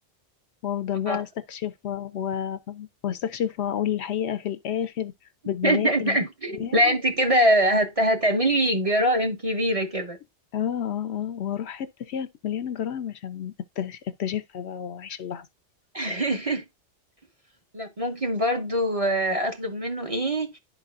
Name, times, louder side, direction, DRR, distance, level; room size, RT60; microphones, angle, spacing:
voice 1, 0.6-5.1 5.5-6.2 6.5-7.0 10.5-15.5, left 9 dB, 70° left, 0.8 m, -30 dB
voice 2, 5.6-10.2 15.9-16.6 17.7-20.6, right 1 dB, 30° right, 1.1 m, -23 dB
11.5 x 4.1 x 2.4 m
omnidirectional pair, 1.2 m